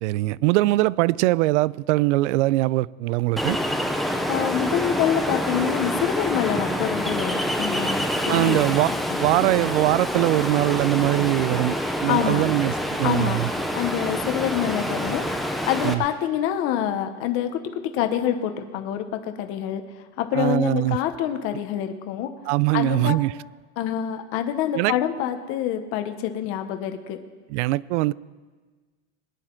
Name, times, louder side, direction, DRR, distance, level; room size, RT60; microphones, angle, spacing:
voice 1, 0.0-3.6 8.3-8.9 9.2-11.8 12.0-13.5 15.8-16.0 20.3-21.0 22.5-23.3 24.7-24.9 27.5-28.1, right 19 dB, 75° right, 0.5 m, -22 dB
Ocean, 3.4-15.9, equal, ahead, 0.4 m, -27 dB
voice 2, 4.3-8.6 9.2-9.3 12.1-12.5 13.0-13.4 13.7-19.8 20.2-22.3 22.7-23.2 23.8-27.2, left 10 dB, 35° left, 0.9 m, -26 dB
21.5 x 9.8 x 4.5 m
supercardioid pair, 170°, 36 cm